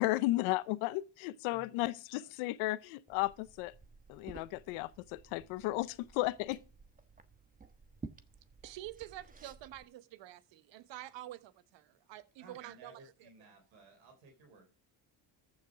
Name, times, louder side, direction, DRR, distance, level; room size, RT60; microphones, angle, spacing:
voice 1, 0.0-3.7 4.1-6.6, left 19 dB, 90° left, 0.8 m, -34 dB
voice 2, 1.5-2.3 12.4-14.7, right 3 dB, 80° right, 3.6 m, -58 dB
Liquid, 3.1-9.8, right 3 dB, 20° right, 1.1 m, -54 dB
voice 3, 8.6-13.3, right 14 dB, 65° right, 1.1 m, -48 dB
14.5 x 6.5 x 4.8 m
supercardioid pair, 85°, 46 cm